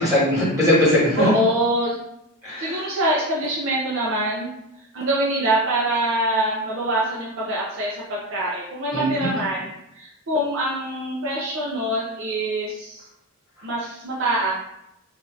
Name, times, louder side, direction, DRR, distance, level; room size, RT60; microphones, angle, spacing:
voice 1, 0.0-1.3 2.4-2.8 8.9-9.3, left 1 dB, 15° right, -9 dB, 1.5 m, -20 dB
voice 2, 1.2-2.0 2.6-4.5 4.9-13.1 13.6-14.5, right 1 dB, 60° right, -5 dB, 0.5 m, -24 dB
2.8 x 2.4 x 3.1 m, 0.83 s
head